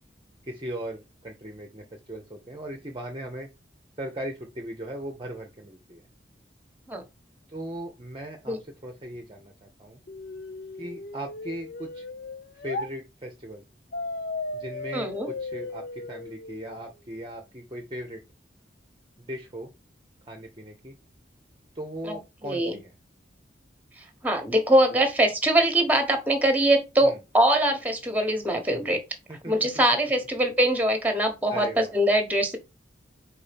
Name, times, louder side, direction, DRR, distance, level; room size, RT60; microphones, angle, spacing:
voice 1, 0.4-3.5 4.0-6.0 7.5-8.6 8.8-10.0 10.8-12.1 12.5-13.6 14.5-18.2 19.2-19.7 20.2-20.9 21.7-22.9 27.0-27.2 29.3-29.5 31.5-31.9, right 1 dB, 25° right, 0.8 m, -38 dB
sound 1, 10.1-12.9 13.9-16.9, left 2 dB, 50° left, 0.7 m, -36 dB
voice 2, 14.9-15.3 22.0-22.8 24.0-29.0 29.5-32.6, right 1 dB, 10° right, 1.2 m, -23 dB
4.8 x 4.3 x 5.1 m
head